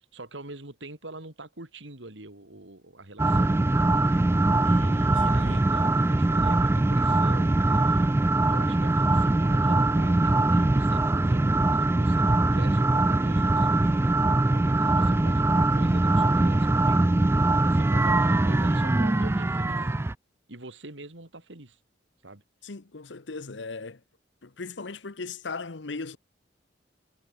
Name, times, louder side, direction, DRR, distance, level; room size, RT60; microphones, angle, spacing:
voice 1, 0.0-4.2 4.6-8.1 8.5-14.1 14.5-17.0 17.6-19.9 20.5-21.8 22.2-22.4, right 2 dB, 90° right, 3.2 m, -44 dB
sound 1, 3.2-20.1, right 2 dB, 15° right, 0.3 m, -22 dB
voice 2, 5.1-5.6 22.6-24.0 24.4-26.2, left 4 dB, 80° left, 1.0 m, -38 dB
head